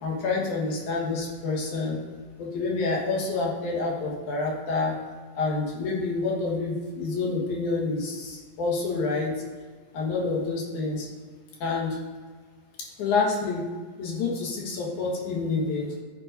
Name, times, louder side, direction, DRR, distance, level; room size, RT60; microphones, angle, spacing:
voice 1, 0.0-2.0 2.4-5.0 5.3-9.3 9.9-11.1 11.6-12.0 13.0-13.6 14.0-15.9, left 3 dB, 65° left, -3 dB, 2.7 m, -28 dB
13.0 x 5.3 x 2.7 m, 1.5 s
omnidirectional pair, 4.0 m